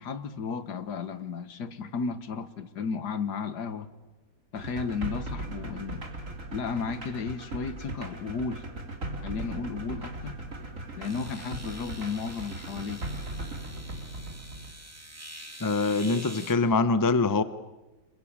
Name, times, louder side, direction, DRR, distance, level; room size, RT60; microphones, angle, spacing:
voice 1, 0.0-3.9 4.5-6.0 6.5-8.6 9.2-10.4 10.9-13.0, left 5 dB, 75° left, 1.8 m, -34 dB
sound 1, 4.5-14.7, right 2 dB, 50° right, 3.0 m, -38 dB
sound 2, 10.1-10.2 11.0-16.5, right 1 dB, 10° right, 2.5 m, -46 dB
voice 2, 15.6-17.4, left 3 dB, 20° left, 0.5 m, -24 dB
27.0 x 22.5 x 8.8 m
omnidirectional pair, 1.8 m